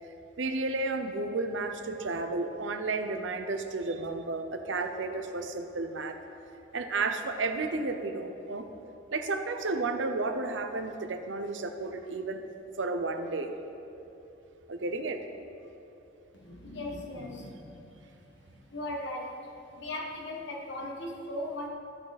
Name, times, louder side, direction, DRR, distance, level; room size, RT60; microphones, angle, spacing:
voice 1, 0.4-6.2 6.7-8.7 9.1-12.4 12.8-13.6 14.7-15.3, right 3 dB, 85° right, 7 dB, 0.7 m, -32 dB
voice 2, 16.3-18.2 18.5-21.7, left 1 dB, 70° left, 0 dB, 1.4 m, -38 dB
13.5 x 6.4 x 4.2 m, 2.9 s
head